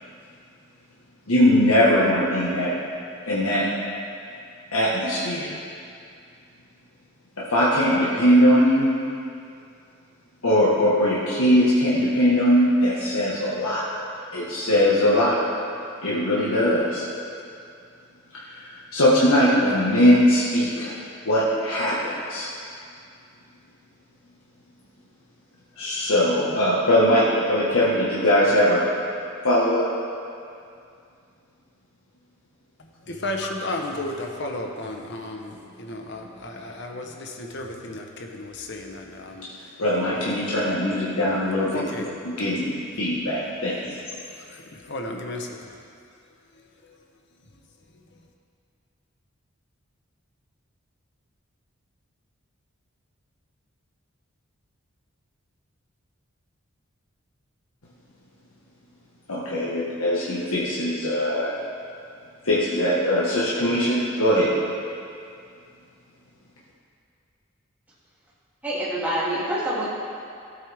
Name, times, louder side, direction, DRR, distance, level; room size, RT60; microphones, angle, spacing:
voice 1, 1.3-2.7 3.2-3.6 4.7-5.6 7.5-9.0 10.4-13.8 14.3-15.4 16.0-17.0 18.4-20.9 21.2-22.5 25.8-28.9 29.4-29.8 39.8-41.8 42.2-43.9 59.3-61.5 62.4-64.5, equal, 85° left, -7 dB, 1.5 m, -20 dB
voice 2, 33.1-39.5 41.7-42.0 44.9-45.6, left 1 dB, 55° left, 2 dB, 1.1 m, -33 dB
voice 3, 68.6-69.9, right 1 dB, 10° right, -11 dB, 2.8 m, -26 dB
14.5 x 8.4 x 3.5 m, 2.4 s
head